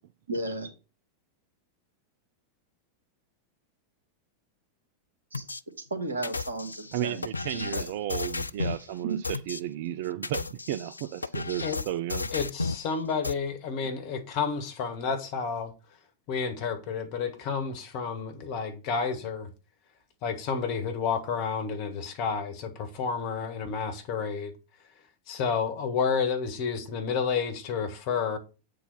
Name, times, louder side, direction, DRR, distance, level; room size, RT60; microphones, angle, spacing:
voice 1, 0.3-0.7 5.3-5.5 5.8-7.2 7.5-7.9, right 2 dB, 75° right, 1.7 m, -34 dB
sound 1, 5.3-5.6 6.2-8.8 9.2-9.6 10.1-12.8 13.2-13.3, left 4 dB, 80° left, 0.4 m, -33 dB
voice 2, 6.9-12.3, right 12 dB, 50° right, 0.4 m, -33 dB
voice 3, 12.3-15.7 16.3-19.5 20.2-24.5 25.3-28.4, left 6 dB, 45° left, 1.6 m, -30 dB
8.2 x 3.8 x 5.6 m
figure-of-eight pair, 90°, 0 cm